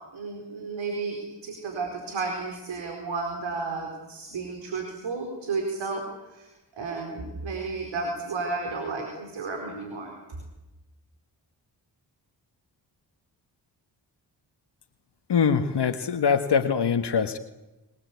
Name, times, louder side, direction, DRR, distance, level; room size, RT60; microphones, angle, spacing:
voice 1, 0.1-6.0 6.3-6.5 6.8-10.2, right 4 dB, 75° right, 2 dB, 4.6 m, -32 dB
voice 2, 15.3-17.4, left 6 dB, 60° left, 8 dB, 1.5 m, -23 dB
27.0 x 20.0 x 8.4 m, 1.0 s
supercardioid pair, 40°, 46 cm